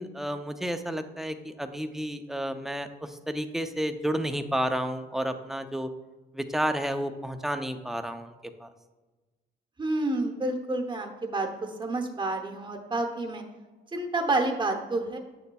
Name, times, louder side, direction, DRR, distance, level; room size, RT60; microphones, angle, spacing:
voice 1, 0.0-5.9 6.3-8.3 8.6-8.7, equal, ahead, 7 dB, 0.5 m, -31 dB
voice 2, 9.8-13.4 13.9-15.2, right 2 dB, 25° right, 2 dB, 0.8 m, -29 dB
8.4 x 6.8 x 2.3 m, 1.2 s
cardioid pair, 90°, 20 cm